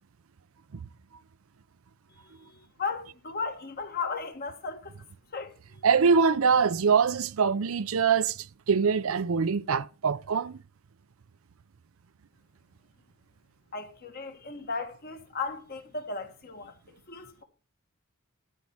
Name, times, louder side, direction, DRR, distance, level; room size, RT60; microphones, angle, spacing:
voice 1, 2.2-5.0 5.3-5.8 13.7-17.4, left 4 dB, 45° left, 1.7 m, -36 dB
voice 2, 5.8-10.6, right 5 dB, 70° right, 0.5 m, -24 dB
12.0 x 4.8 x 7.1 m
head